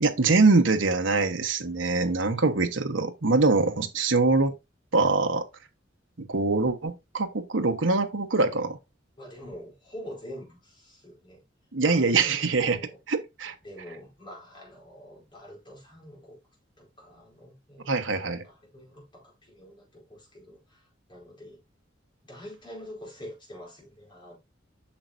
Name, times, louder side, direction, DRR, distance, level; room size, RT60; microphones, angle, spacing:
voice 1, 0.0-4.5 4.9-5.4 6.2-8.8 11.7-12.8 13.1-13.5 17.9-18.4, right 3 dB, 75° right, 1.1 m, -23 dB
voice 2, 9.2-11.4 11.8-13.0 13.6-16.4 16.8-21.6 22.2-24.4, equal, 25° left, 4.5 m, -46 dB
8.6 x 6.2 x 2.6 m
head